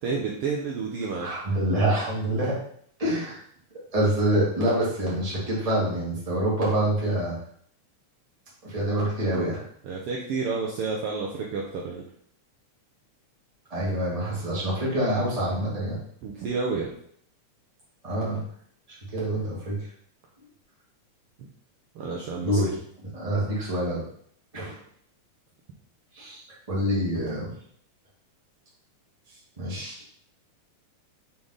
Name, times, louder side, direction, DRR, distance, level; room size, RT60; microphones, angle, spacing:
voice 1, 0.0-1.3 9.8-12.0 16.2-16.9 21.9-22.6, right 4 dB, 80° right, -2 dB, 1.3 m, -30 dB
voice 2, 1.2-2.6 3.0-3.4 3.9-7.4 8.6-9.6 13.7-16.0 18.0-18.4 18.9-19.9 22.4-24.0 24.5-24.8 26.1-26.4 26.7-27.5 29.6-30.0, right 1 dB, 15° right, -6 dB, 1.5 m, -26 dB
6.8 x 3.6 x 3.9 m, 0.64 s
omnidirectional pair, 3.5 m